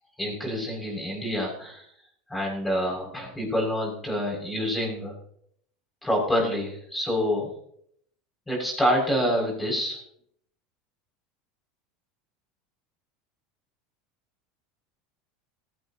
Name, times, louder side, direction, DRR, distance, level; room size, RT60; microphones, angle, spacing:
voice 1, 0.2-1.8 2.3-5.2 6.0-7.5 8.5-10.0, equal, 10° left, -1 dB, 7.3 m, -27 dB
17.5 x 16.5 x 3.1 m, 0.69 s
supercardioid pair, 110°, 0 cm